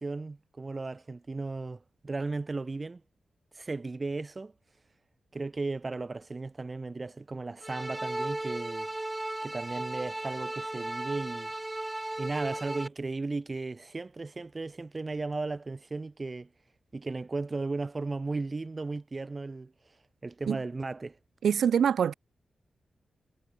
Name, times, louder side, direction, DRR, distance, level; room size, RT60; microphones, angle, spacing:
voice 1, 0.0-3.0 3.5-4.5 5.3-8.9 9.4-11.5 12.2-16.5 16.9-19.7 20.2-21.2, right 3 dB, 35° right, 1.0 m, -35 dB
sound 1, 7.6-12.9, right 1 dB, 15° right, 0.5 m, -35 dB
voice 2, 21.4-22.1, right 8 dB, 85° right, 0.6 m, -24 dB
cardioid pair, 85°, 0 cm